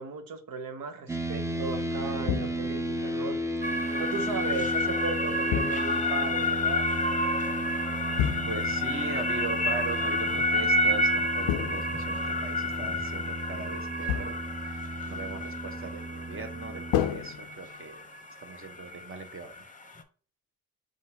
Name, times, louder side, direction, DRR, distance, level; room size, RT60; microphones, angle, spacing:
voice 1, 0.0-3.4 3.9-6.8, right 5 dB, 70° right, 5 dB, 0.9 m, -36 dB
sound 1, 1.1-16.9, right 1 dB, 10° right, 0.6 m, -34 dB
sound 2, 2.3-2.9 5.5-6.2 8.2-8.9 11.5-12.4 14.1-14.6 16.9-18.0, left 10 dB, 80° left, 0.5 m, -31 dB
sound 3, 3.6-20.0, left 1 dB, 20° left, 0.8 m, -30 dB
voice 2, 8.5-14.4 14.6-18.0 18.4-19.6, right 3 dB, 35° right, 6 dB, 1.1 m, -40 dB
4.9 x 3.6 x 2.8 m, 0.41 s
supercardioid pair, 55°, 35 cm